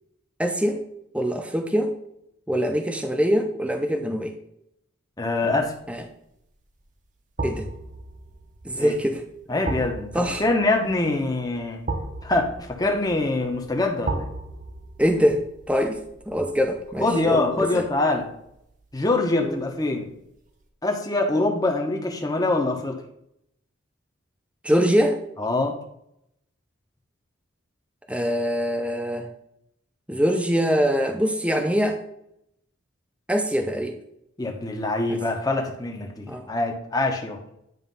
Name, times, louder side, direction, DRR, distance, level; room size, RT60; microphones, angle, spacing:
voice 1, 0.4-0.8 1.1-2.0 2.5-4.4 5.9-6.0 7.4-7.7 8.6-9.2 10.1-10.4 15.0-15.4 15.7-16.0 16.3-17.9 19.4-19.6 24.6-25.2 28.1-29.3 30.1-32.0 33.3-34.0 35.1-35.2 36.3-36.4, equal, 5° right, 5 dB, 0.6 m, -23 dB
voice 2, 5.2-5.7 8.7-9.0 9.5-10.1 10.4-11.9 12.2-14.3 17.0-18.3 18.9-20.1 20.8-23.0 25.4-25.8 34.4-37.4, left 2 dB, 20° left, 2 dB, 0.9 m, -24 dB
sound 1, 5.6-6.0 7.4-18.4 18.7-18.8, right 2 dB, 40° right, 0.9 m, -36 dB
9.3 x 3.3 x 5.4 m, 0.78 s
head